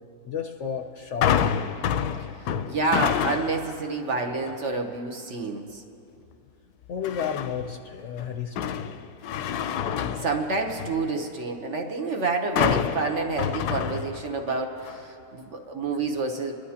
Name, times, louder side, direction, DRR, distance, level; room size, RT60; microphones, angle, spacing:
voice 1, 0.2-1.8 6.9-9.0, left 7 dB, 60° left, 3 dB, 0.8 m, -33 dB
sound 1, 1.2-3.7 4.2-4.6 7.0-7.7 8.2-11.0 12.6-14.5 14.8-15.0, left 8 dB, 80° left, 1.1 m, -28 dB
voice 2, 2.7-5.8 10.2-16.5, right 3 dB, 55° right, 3 dB, 1.1 m, -28 dB
29.0 x 11.5 x 2.9 m, 2.6 s
omnidirectional pair, 1.7 m